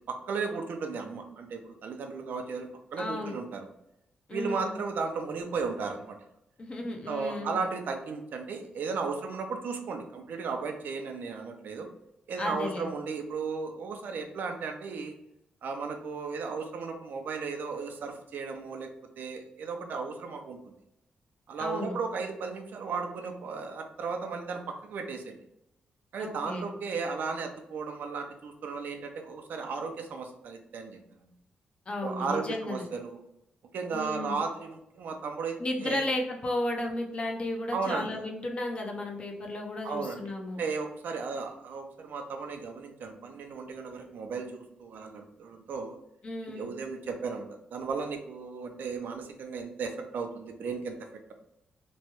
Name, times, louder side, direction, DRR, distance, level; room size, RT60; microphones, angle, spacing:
voice 1, 0.0-3.7 4.3-6.2 7.1-11.9 12.3-15.1 15.6-18.9 19.2-20.6 21.5-25.4 26.1-31.0 32.0-33.2 33.7-36.0 37.7-38.2 39.8-40.2 40.6-46.0 46.5-51.0, right 4 dB, 70° right, 4 dB, 0.5 m, -35 dB
voice 2, 3.0-3.4 4.3-4.8 6.6-7.6 12.4-12.9 21.6-21.9 26.2-26.7 31.9-32.9 33.9-34.4 35.6-40.6 46.2-46.7, left 1 dB, 35° left, 1 dB, 0.6 m, -34 dB
3.0 x 2.2 x 2.9 m, 0.82 s
cardioid pair, 110°, 3 cm